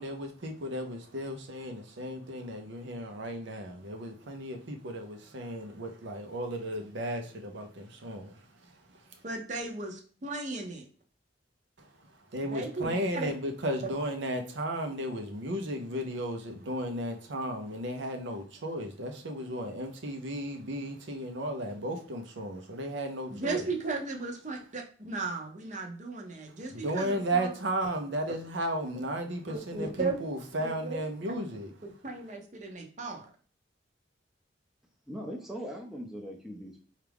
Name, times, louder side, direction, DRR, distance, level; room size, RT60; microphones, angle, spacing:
voice 1, 0.0-9.2 11.8-23.7 26.7-31.7, right 1 dB, 85° right, 0.7 m, -35 dB
voice 2, 9.2-10.9 12.5-13.3 23.4-27.5 29.0-29.1 29.5-30.2 30.6-31.0 31.8-33.3, right 3 dB, 40° right, 0.7 m, -36 dB
voice 3, 35.1-36.8, equal, ahead, 0.5 m, -40 dB
4.5 x 2.5 x 3.4 m
head